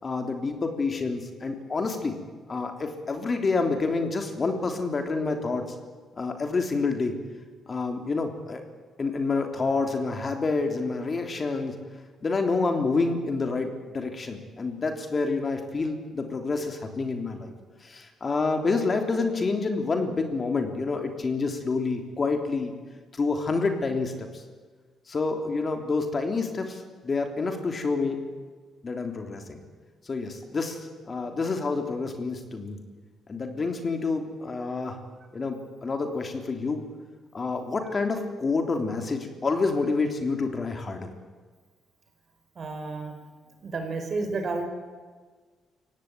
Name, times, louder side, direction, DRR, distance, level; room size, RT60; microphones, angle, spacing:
voice 1, 0.0-2.2 2.5-5.6 6.2-7.2 7.7-8.6 9.0-11.7 12.2-17.5 17.8-22.7 23.2-24.4 25.1-28.2 28.8-29.6 30.0-32.8 33.3-35.0 35.3-36.8 37.3-41.1, left 3 dB, 35° left, 5 dB, 3.4 m, -28 dB
voice 2, 42.5-43.1 43.6-44.6, right 3 dB, 45° right, 5 dB, 5.2 m, -31 dB
23.0 x 17.5 x 9.3 m, 1.5 s
cardioid pair, 90°, 0 cm